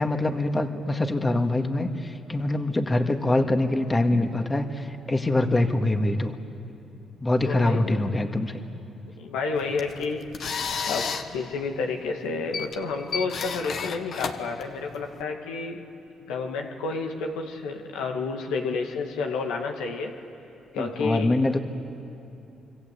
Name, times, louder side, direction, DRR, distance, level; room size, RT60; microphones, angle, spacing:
voice 1, 0.0-6.3 7.2-8.6 20.7-21.6, left 2 dB, 25° left, 5 dB, 2.0 m, -24 dB
voice 2, 7.4-8.0 9.2-10.2 10.9-15.9 16.3-20.1 20.7-21.4, left 4 dB, 85° left, 2 dB, 2.0 m, -30 dB
sound 1, 9.6-15.2, left 6 dB, 65° left, 1.5 m, -33 dB
26.0 x 25.0 x 8.3 m, 2.8 s
supercardioid pair, 60°, 0 cm